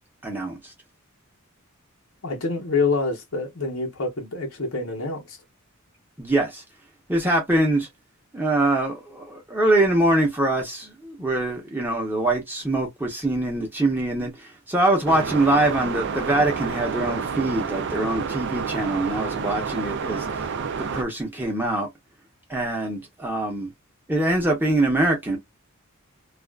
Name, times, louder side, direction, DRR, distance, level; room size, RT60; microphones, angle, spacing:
voice 1, 0.2-0.7 6.2-6.6 7.1-7.9 8.3-20.5 20.9-21.9 22.5-23.7 24.1-25.4, right 1 dB, 10° right, 0.8 m, -23 dB
voice 2, 2.2-5.4, left 3 dB, 75° left, 1.0 m, -26 dB
sound 1, 15.1-21.0, right 5 dB, 55° right, 0.4 m, -29 dB
2.4 x 2.3 x 2.3 m
head